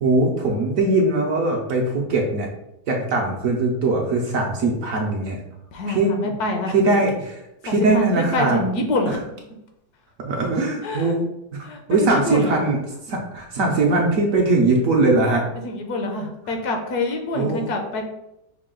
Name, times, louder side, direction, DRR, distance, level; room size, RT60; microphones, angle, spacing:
voice 1, 0.0-2.5 2.9-5.4 5.9-6.3 6.7-8.6 9.1-9.2 10.2-11.3 11.5-12.8 13.1-15.4 17.3-17.6, right 2 dB, 60° right, 0 dB, 1.0 m, -21 dB
voice 2, 5.7-6.7 7.7-9.2 10.8-11.2 11.6-12.7 15.6-18.0, left 2 dB, 70° left, 3 dB, 1.2 m, -26 dB
5.7 x 2.3 x 3.7 m, 0.87 s
omnidirectional pair, 1.9 m